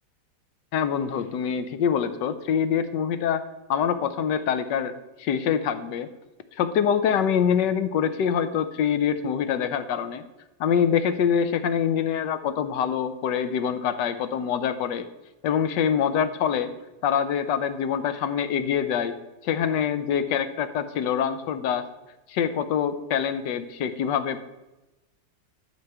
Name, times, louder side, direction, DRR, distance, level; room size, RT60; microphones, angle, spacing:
voice 1, 0.7-3.4 3.7-4.9 5.2-6.1 6.6-10.2 10.6-15.1 15.4-16.7 17.0-19.1 19.4-21.9 22.3-24.4, left 8 dB, 90° left, 11 dB, 1.4 m, -25 dB
12.5 x 4.7 x 6.7 m, 1.0 s
omnidirectional pair, 1.9 m